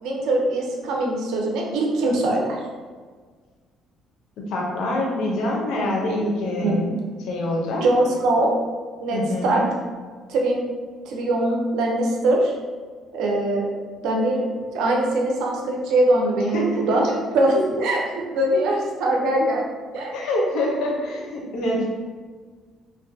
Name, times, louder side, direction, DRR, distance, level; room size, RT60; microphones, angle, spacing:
voice 1, 0.0-2.6 6.6-6.7 7.8-8.5 9.0-9.6 10.3-10.6 11.1-12.5 13.1-13.7 14.0-14.4 14.7-17.1 17.3-19.6 19.9-20.1, right 1 dB, 80° right, 0 dB, 0.5 m, -22 dB
voice 2, 4.5-6.9 7.2-7.8 9.1-9.6 16.5-17.1 20.1-21.8, left 1 dB, 80° left, -2 dB, 0.6 m, -25 dB
2.5 x 2.1 x 2.6 m, 1.5 s
cardioid pair, 90°, 0 cm